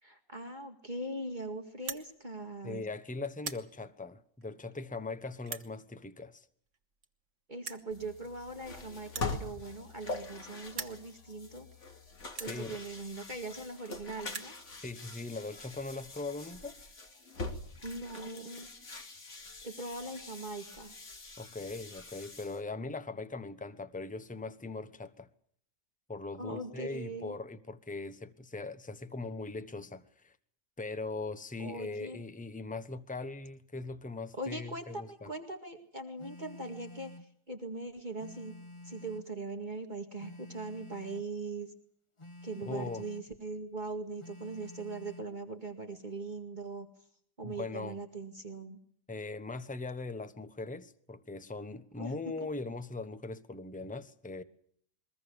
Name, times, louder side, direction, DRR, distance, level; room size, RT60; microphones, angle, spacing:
voice 1, 0.0-2.8 7.5-11.7 12.4-14.5 17.8-18.7 19.6-20.9 26.4-27.4 31.6-32.2 34.3-37.1 37.5-38.6 38.8-41.7 42.4-46.9 47.4-48.8 52.0-52.1 52.4-52.5, right 2 dB, 35° right, 2.2 m, -41 dB
sound 1, 1.7-2.1 2.7-2.9 3.3-3.7 4.4-4.5 5.4-5.7 6.7-6.8 7.0-7.1 7.6-7.9 9.0-10.4 10.7-11.0 11.7-11.8 12.3-12.6 13.5-13.6 13.8-13.9 14.1-14.6, right 5 dB, 65° right, 1.9 m, -42 dB
voice 2, 2.6-6.4 12.3-12.8 14.8-16.7 21.4-25.3 26.1-30.3 30.8-35.3 42.6-43.1 47.4-48.0 49.1-54.4, left 3 dB, 5° left, 1.1 m, -40 dB
sound 2, 7.9-22.6, left 3 dB, 60° left, 2.8 m, -44 dB
Telephone, 36.2-37.3 38.2-39.3 40.2-41.3 42.2-43.3 44.2-45.3, left 1 dB, 20° left, 1.4 m, -50 dB
22.5 x 21.5 x 7.0 m
omnidirectional pair, 1.4 m